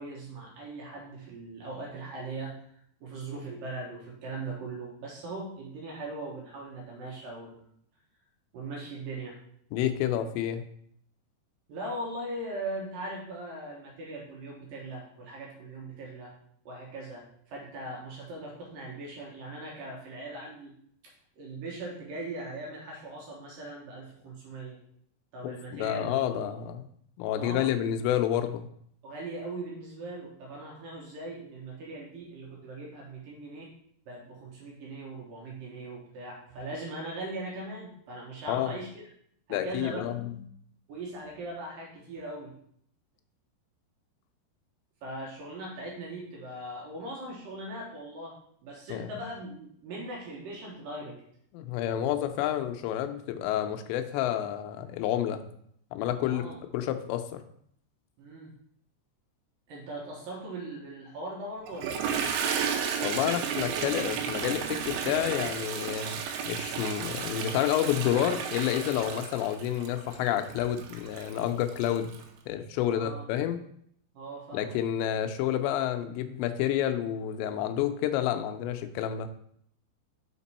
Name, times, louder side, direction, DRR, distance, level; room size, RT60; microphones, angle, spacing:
voice 1, 0.0-2.6 3.0-7.6 8.5-9.4 11.7-16.3 16.7-20.8 21.4-24.8 25.3-26.6 27.4-27.7 29.0-33.7 34.1-39.1 39.5-40.0 40.9-42.6 45.0-51.2 56.2-56.6 58.2-58.5 59.7-62.3 72.9-73.2 74.1-74.8, right 2 dB, 70° right, -2 dB, 2.3 m, -40 dB
voice 2, 9.7-10.6 25.4-26.9 27.2-28.7 38.5-38.7 39.5-40.3 48.9-49.1 51.5-55.4 55.9-56.5 56.7-57.4 63.0-72.1 72.5-73.6 74.5-79.3, left 11 dB, 90° left, 7 dB, 2.8 m, -29 dB
Toilet flush, 61.7-72.2, right 7 dB, 90° right, 3.0 m, -33 dB
6.0 x 5.1 x 4.2 m, 0.67 s
omnidirectional pair, 5.0 m